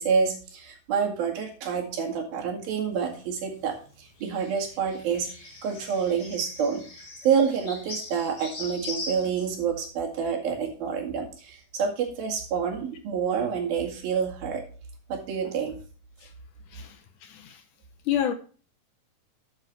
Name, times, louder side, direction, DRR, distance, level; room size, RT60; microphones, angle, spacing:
voice 1, 0.0-5.3 5.6-14.6 15.1-15.8, right 6 dB, 80° right, 3.9 m, -28 dB
sound 1, 3.0-9.5, left 3 dB, 35° left, 3.1 m, -41 dB
voice 2, 17.2-17.6 18.1-18.3, left 10 dB, 70° left, 2.2 m, -28 dB
12.0 x 8.0 x 3.1 m
omnidirectional pair, 4.2 m